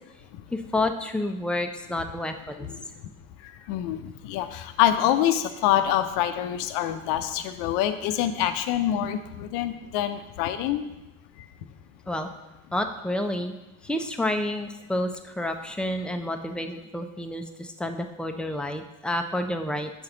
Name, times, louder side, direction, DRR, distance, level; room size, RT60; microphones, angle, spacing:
voice 1, 0.5-2.7 12.1-12.3 12.7-13.5 13.8-19.9, left 1 dB, ahead, 5 dB, 0.7 m, -29 dB
voice 2, 3.7-10.8, left 11 dB, 70° left, 10 dB, 0.7 m, -25 dB
7.0 x 5.7 x 3.9 m, 0.97 s
hypercardioid pair, 55°, 42 cm